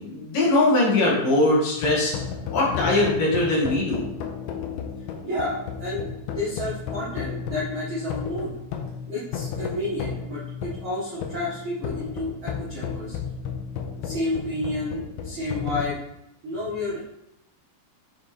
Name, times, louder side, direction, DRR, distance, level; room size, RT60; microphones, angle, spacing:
voice 1, 0.0-2.1 2.5-4.1, left 2 dB, 65° left, -5 dB, 3.2 m, -21 dB
sound 1, 1.8-15.9, left 6 dB, 85° left, 2.5 m, -33 dB
voice 2, 5.2-8.6 9.1-13.2 14.0-16.0 16.4-17.0, left 1 dB, 75° right, -7 dB, 1.1 m, -30 dB
7.2 x 4.1 x 3.2 m, 0.82 s
omnidirectional pair, 4.4 m